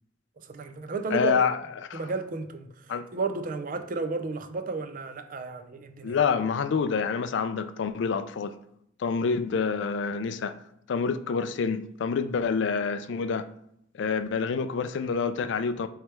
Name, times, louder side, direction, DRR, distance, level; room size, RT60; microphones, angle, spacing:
voice 1, 0.4-1.4 1.9-6.2, right 3 dB, 45° right, 7 dB, 0.5 m, -33 dB
voice 2, 1.1-1.6 1.9-2.0 2.9-3.1 6.0-8.5 9.0-10.5 10.9-13.5 13.9-15.9, left 5 dB, 65° left, 11 dB, 0.3 m, -27 dB
3.2 x 3.0 x 4.6 m, 0.73 s
head